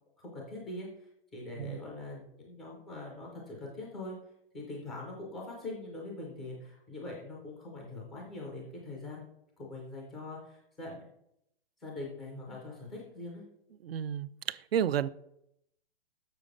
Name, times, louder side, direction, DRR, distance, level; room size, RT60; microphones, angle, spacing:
voice 1, 0.2-4.2 4.5-9.3 9.6-11.1 11.8-13.4, left 2 dB, ahead, -2 dB, 0.3 m, -43 dB
voice 2, 13.8-15.1, right 9 dB, 85° right, 17 dB, 0.6 m, -31 dB
7.0 x 6.3 x 5.0 m, 0.76 s
hypercardioid pair, 160°, 29 cm